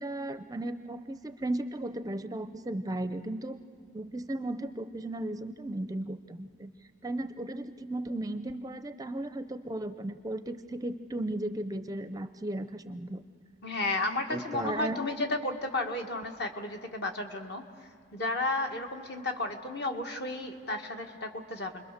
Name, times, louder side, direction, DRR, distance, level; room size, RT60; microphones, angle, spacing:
voice 1, 0.0-3.6 3.9-6.7 7.0-13.2 14.3-15.0, right 1 dB, 20° right, 10 dB, 0.6 m, -35 dB
voice 2, 13.6-17.7 18.1-21.8, left 2 dB, 55° left, 4 dB, 1.7 m, -33 dB
29.0 x 22.0 x 6.7 m, 2.4 s
head